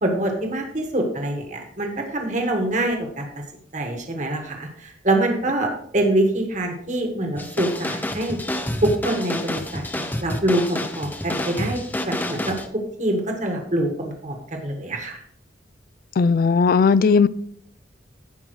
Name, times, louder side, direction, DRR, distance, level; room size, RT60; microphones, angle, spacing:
voice 1, 0.0-3.3 3.7-8.4 8.8-11.8 12.1-12.6 13.0-15.2, right 1 dB, 45° right, 1.6 m, -25 dB
sound 1, 7.4-12.7, left 1 dB, 10° left, 0.6 m, -29 dB
voice 2, 16.2-17.3, left 5 dB, 50° left, 0.3 m, -16 dB
16.0 x 5.5 x 3.2 m
head